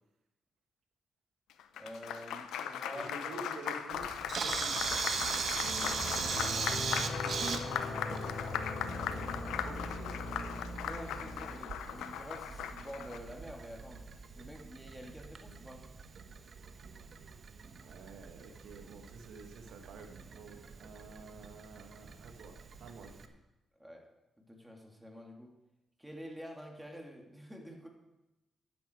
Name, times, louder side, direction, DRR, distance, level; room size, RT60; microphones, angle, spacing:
Applause, 1.5-13.2, left 9 dB, 85° left, 0.7 m, -39 dB
voice 1, 1.8-3.4 8.2-8.8 10.8-14.1 14.4-15.9 23.8-24.1 24.4-25.5 26.0-27.9, equal, 5° right, 1 dB, 2.9 m, -48 dB
voice 2, 2.9-4.9 9.6-10.6 17.7-23.2, right 3 dB, 80° right, 5 dB, 1.5 m, -49 dB
Camera, 3.9-23.3, right 5 dB, 60° right, 1.1 m, -40 dB
sound 1, 5.6-11.5, left 2 dB, 55° left, 3.8 m, -40 dB
11.5 x 10.5 x 4.7 m, 0.96 s
supercardioid pair, 55°, 0 cm